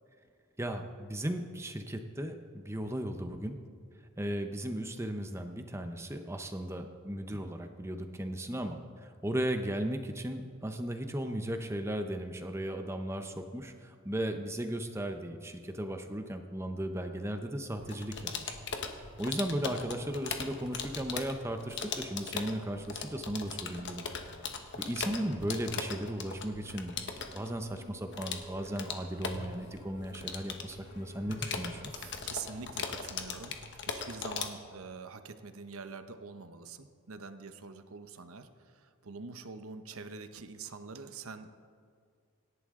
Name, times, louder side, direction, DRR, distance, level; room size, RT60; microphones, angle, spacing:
voice 1, 0.6-3.6 4.2-18.6 19.2-24.1 24.8-27.0 27.3-31.8, right 1 dB, 10° right, 6 dB, 0.8 m, -36 dB
sound 1, 17.8-34.5, left 5 dB, 50° left, 1.2 m, -39 dB
sound 2, 26.6-33.0, left 2 dB, 30° left, 1.3 m, -56 dB
voice 2, 31.9-41.5, right 4 dB, 70° right, 9 dB, 0.9 m, -45 dB
26.0 x 11.0 x 3.8 m, 2.1 s
head